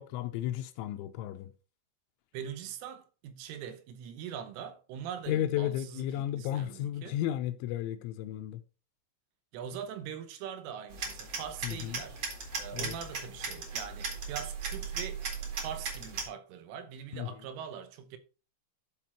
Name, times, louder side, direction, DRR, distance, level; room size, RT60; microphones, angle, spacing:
voice 1, 0.0-1.5 5.3-8.6 11.6-12.0 12.7-13.0 17.1-17.3, left 12 dB, 85° left, 2.9 m, -33 dB
voice 2, 2.3-7.2 9.5-12.2 12.6-15.2 15.6-18.2, right 8 dB, 80° right, 3.5 m, -42 dB
sound 1, 10.9-16.2, right 4 dB, 45° right, 2.1 m, -37 dB
12.0 x 4.3 x 4.3 m
omnidirectional pair, 5.7 m